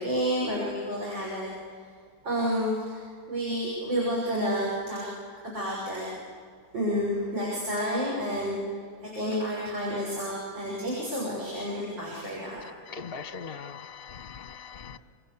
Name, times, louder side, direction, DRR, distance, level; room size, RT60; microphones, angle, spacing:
voice 1, 0.0-1.5 2.2-3.0 3.3-5.0 5.4-6.0 6.7-8.6 9.0-12.6, equal, 60° right, -4 dB, 7.4 m, -30 dB
voice 2, 12.9-15.0, left 6 dB, 35° left, 10 dB, 1.1 m, -40 dB
28.0 x 26.5 x 7.2 m, 2.1 s
omnidirectional pair, 2.2 m